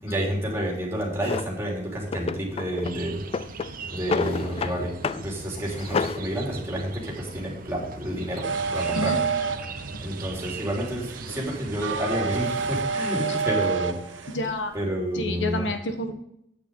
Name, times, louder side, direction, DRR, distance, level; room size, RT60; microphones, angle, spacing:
voice 1, 0.0-3.2 3.9-5.0 5.2-9.2 10.0-14.2 14.7-15.7, equal, 15° right, -3 dB, 3.2 m, -29 dB
Drawer open or close, 1.2-1.5 2.1-3.0 3.3-4.8 5.0-5.3 5.6-6.2, left 5 dB, 30° left, 0.3 m, -29 dB
sound 1, 2.8-12.8, right 3 dB, 50° right, 0.8 m, -40 dB
sound 2, 8.4-14.3, right 5 dB, 80° right, 0.8 m, -29 dB
voice 2, 14.3-14.7 15.1-16.1, left 1 dB, 70° left, 6 dB, 1.2 m, -29 dB
9.1 x 8.6 x 3.8 m, 0.78 s
head